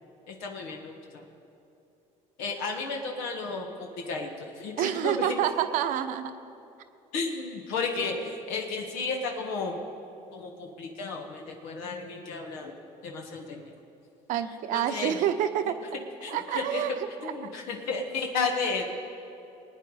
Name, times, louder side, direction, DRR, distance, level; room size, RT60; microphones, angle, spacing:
voice 1, 0.3-1.2 2.4-5.4 7.1-9.8 10.3-12.7 13.0-13.6 14.7-15.2 16.2-16.8 17.2-18.9, left 4 dB, 90° left, 1 dB, 1.5 m, -33 dB
voice 2, 4.8-6.3 14.3-15.8 16.3-16.9, right 10 dB, 70° right, 9 dB, 0.9 m, -27 dB
20.5 x 9.2 x 4.9 m, 2.7 s
cardioid pair, 100°, 14 cm